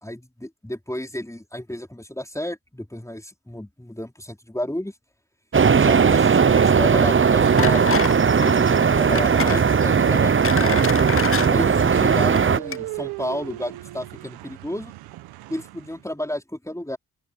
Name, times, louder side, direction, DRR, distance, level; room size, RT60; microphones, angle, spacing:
voice 1, 0.0-4.9 5.7-7.9 8.4-10.9 11.5-14.9 15.5-17.0, left 1 dB, 10° left, 4.6 m, -32 dB
sound 1, 5.5-12.6, right 6 dB, 35° right, 1.0 m, -18 dB
sound 2, 7.3-16.1, right 17 dB, 85° right, 1.5 m, -38 dB
sound 3, 7.6-8.2 8.4-8.6 9.1-9.6 10.1-11.5 12.2-12.4 12.7-12.8, left 8 dB, 35° left, 0.7 m, -28 dB
open air
hypercardioid pair, 40°, 37 cm